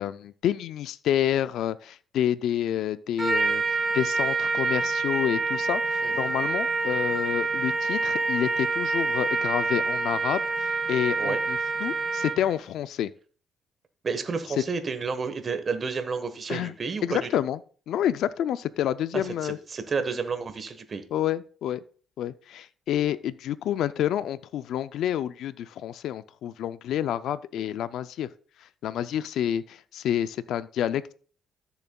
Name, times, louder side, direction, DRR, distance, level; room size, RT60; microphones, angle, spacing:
voice 1, 0.0-3.6 3.9-13.1 16.5-16.7 17.0-17.6 17.9-19.6 21.1-21.8 22.2-28.3 28.8-31.1, left 10 dB, 80° left, 14 dB, 0.3 m, -28 dB
Trumpet, 3.2-12.5, right 3 dB, 20° right, 1.2 m, -27 dB
voice 2, 14.0-17.3 19.1-21.0, right 5 dB, 40° right, 9 dB, 1.2 m, -31 dB
13.5 x 7.0 x 2.3 m, 0.41 s
cardioid pair, 90°, 0 cm